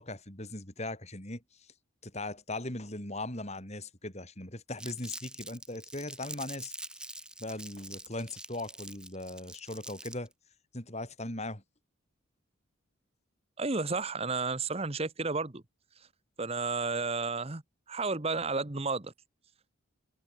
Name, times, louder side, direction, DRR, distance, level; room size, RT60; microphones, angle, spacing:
voice 1, 0.0-1.4 2.0-6.7 7.4-10.3 10.7-11.6, left 2 dB, 35° left, 5.5 m, -39 dB
Crumpling crinkling, 4.8-10.3, right 1 dB, 5° right, 7.6 m, -45 dB
voice 2, 13.6-15.6 16.4-17.6 17.9-19.1, right 3 dB, 30° right, 1.2 m, -32 dB
head